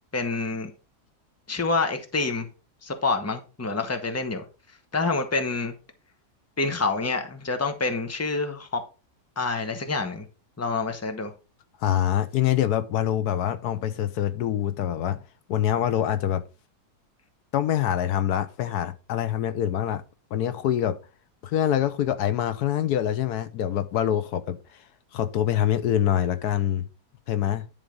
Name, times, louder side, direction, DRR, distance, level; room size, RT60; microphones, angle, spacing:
voice 1, 0.1-0.7 1.5-2.5 2.8-4.4 4.9-5.7 6.6-8.8 9.4-10.2 10.6-11.3, left 3 dB, 10° left, 0.9 m, -27 dB
voice 2, 11.8-15.2 15.5-16.4 17.5-20.0 20.3-21.0 21.4-24.6 25.1-26.9 27.3-27.7, left 10 dB, 90° left, 1.3 m, -25 dB
10.5 x 3.6 x 5.2 m
omnidirectional pair, 1.6 m